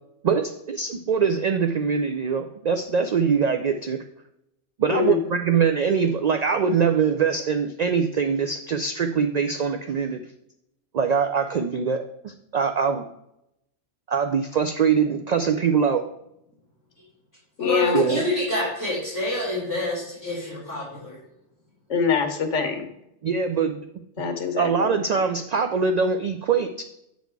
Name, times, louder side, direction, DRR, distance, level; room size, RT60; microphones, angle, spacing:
voice 1, 0.2-4.0 4.8-10.2 10.9-13.1 14.1-16.0 17.9-18.2 23.2-23.8 24.6-26.8, right 6 dB, 65° right, 7 dB, 0.4 m, -23 dB
voice 2, 4.9-5.3 17.6-18.0 21.9-22.8 24.2-25.0, left 6 dB, 80° left, 6 dB, 1.3 m, -24 dB
voice 3, 17.6-21.2, left 1 dB, 15° right, -9 dB, 3.1 m, -27 dB
8.1 x 4.2 x 4.6 m, 0.81 s
omnidirectional pair, 1.2 m